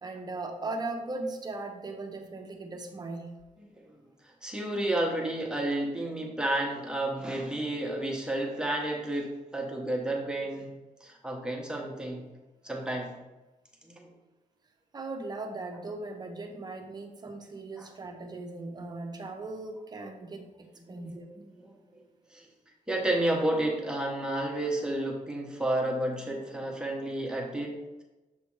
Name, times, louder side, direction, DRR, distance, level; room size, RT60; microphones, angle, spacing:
voice 1, 0.0-3.3 14.9-21.3, right 2 dB, 30° right, 4 dB, 0.7 m, -38 dB
voice 2, 4.2-10.7 11.0-12.3 12.6-13.2 13.8-14.1 17.7-17.9 20.9-21.1 21.6-22.0 22.3-22.5 22.9-27.7, right 1 dB, 5° right, -1 dB, 1.0 m, -31 dB
7.0 x 3.4 x 4.6 m, 1.1 s
wide cardioid pair, 145°, 14 cm